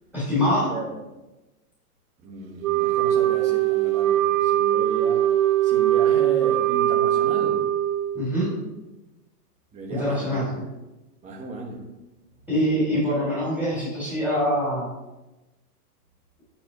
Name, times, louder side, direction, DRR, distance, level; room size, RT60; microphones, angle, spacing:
voice 1, 0.1-0.8 8.1-8.5 9.9-10.5 12.5-14.9, equal, 5° left, -9 dB, 2.9 m, -24 dB
voice 2, 2.2-5.3 5.6-7.6 9.7-10.5 11.2-11.8, right 3 dB, 15° right, -1 dB, 1.2 m, -35 dB
Wind instrument woodwind instrument, 2.6-8.3, right 12 dB, 60° right, 0.9 m, -21 dB
9.3 x 4.3 x 5.3 m, 1.0 s
supercardioid pair, 160°, 46 cm